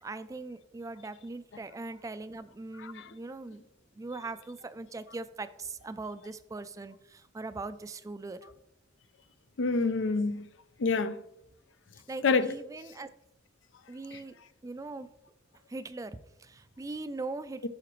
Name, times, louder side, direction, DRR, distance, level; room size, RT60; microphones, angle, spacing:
voice 1, 0.0-3.6 4.0-8.4 12.1-13.1 13.9-14.4 14.6-15.1 15.7-17.7, right 3 dB, 20° right, 0.3 m, -40 dB
voice 2, 9.6-10.5 10.8-11.2 12.2-12.5 14.1-14.2 17.6-17.7, left 4 dB, 80° left, 0.5 m, -27 dB
11.5 x 5.0 x 3.1 m
head